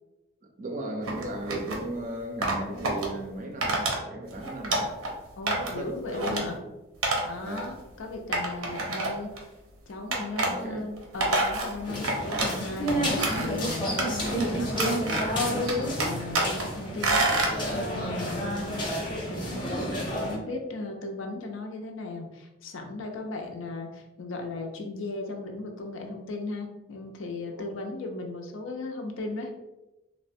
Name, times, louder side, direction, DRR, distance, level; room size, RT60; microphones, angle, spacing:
voice 1, 0.4-5.0 5.6-6.4 7.4-7.7 10.4-10.8 14.1-14.3 18.0-18.2 27.6-27.7, right 1 dB, 40° right, 0.4 m, -36 dB
sound 1, 1.1-1.8 2.4-3.1 3.6-4.0 4.3-5.1 5.5-5.8 6.1-6.4 7.0-7.2 7.5-7.6 8.3-9.4 10.1-10.5 11.0-12.6 12.9-13.6 14.0-14.4 14.7-15.4 15.7-16.6 17.0-17.5, right 2 dB, 90° right, 0.6 m, -27 dB
voice 2, 5.4-6.6 7.2-9.3 9.9-29.5, left 2 dB, 70° left, 0.5 m, -37 dB
sound 2, 11.8-20.4, equal, 20° left, 0.6 m, -30 dB
3.1 x 2.1 x 2.6 m
head